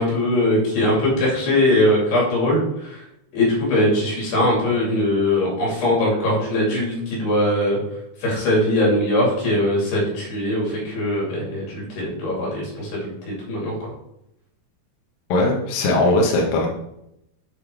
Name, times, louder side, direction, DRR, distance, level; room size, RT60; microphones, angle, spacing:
voice 1, 0.0-3.0 3.3-7.8 8.2-13.9, left 1 dB, 85° left, -5 dB, 5.0 m, -21 dB
voice 2, 15.3-16.7, left 2 dB, 70° left, -1 dB, 2.7 m, -19 dB
9.9 x 3.5 x 4.7 m, 0.81 s
omnidirectional pair, 4.6 m